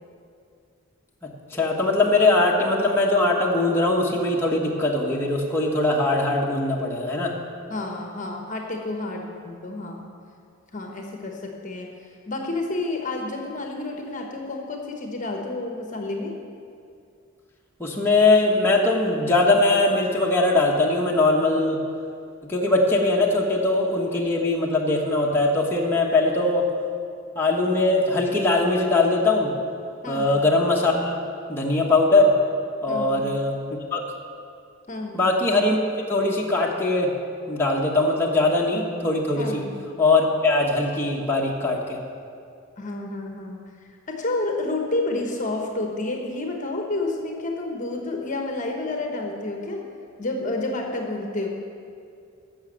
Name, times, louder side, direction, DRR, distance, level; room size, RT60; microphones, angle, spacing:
voice 1, 1.5-7.3 17.8-21.8 22.5-26.7 27.4-29.5 30.1-31.2 31.5-32.4 32.8-33.5 33.9-34.0 35.1-35.8 36.1-37.1 37.5-39.6 40.0-42.0, left 2 dB, 10° left, -3 dB, 1.1 m, -21 dB
voice 2, 7.7-10.1 10.7-11.9 12.3-16.4 30.0-30.4 32.9-33.2 34.9-35.2 39.4-39.7 42.8-43.7 44.1-49.9 50.2-51.5, left 2 dB, 40° left, 2 dB, 1.1 m, -30 dB
11.5 x 6.8 x 7.5 m, 2.4 s
head